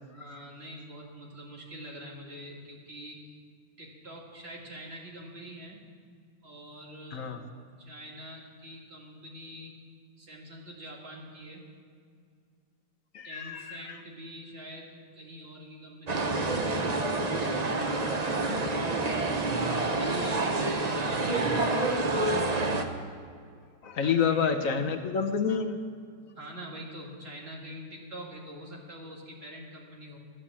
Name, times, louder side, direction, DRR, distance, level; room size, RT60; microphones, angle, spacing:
voice 1, 0.1-3.2 3.8-5.8 6.4-7.3 7.8-9.8 10.2-11.7 13.2-16.5 17.4-18.5 19.9-22.5 24.0-24.7 26.4-30.2, equal, 30° right, -2 dB, 2.2 m, -44 dB
voice 2, 7.1-7.4 13.1-13.8 19.9-20.0 23.8-25.7, left 6 dB, 60° left, 5 dB, 0.9 m, -28 dB
sound 1, 16.1-22.8, right 2 dB, 70° right, 0.3 m, -28 dB
13.5 x 8.4 x 7.5 m, 2.2 s
omnidirectional pair, 2.1 m